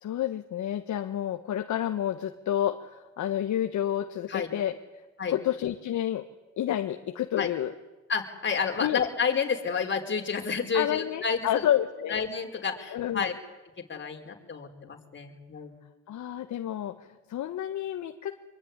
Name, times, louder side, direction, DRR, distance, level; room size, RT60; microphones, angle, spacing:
voice 1, 0.0-4.7 5.3-6.2 6.6-7.7 8.8-9.0 10.7-12.2 12.9-13.3 16.1-18.3, left 11 dB, 70° left, 6 dB, 1.5 m, -29 dB
voice 2, 8.1-11.7 12.1-13.3 13.8-15.7, left 6 dB, 40° left, 3 dB, 4.9 m, -30 dB
25.5 x 23.0 x 9.9 m, 1.1 s
cardioid pair, 90°, 30 cm